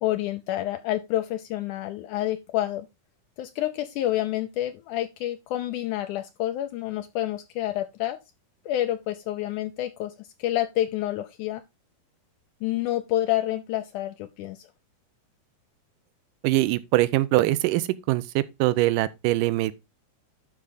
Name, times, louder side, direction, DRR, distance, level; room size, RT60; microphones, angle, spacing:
voice 1, 0.0-2.9 3.4-8.2 8.7-11.6 12.6-14.7, left 14 dB, 80° left, 1.8 m, -28 dB
voice 2, 16.4-19.7, right 17 dB, 80° right, 2.0 m, -23 dB
12.0 x 4.8 x 4.0 m
omnidirectional pair, 4.3 m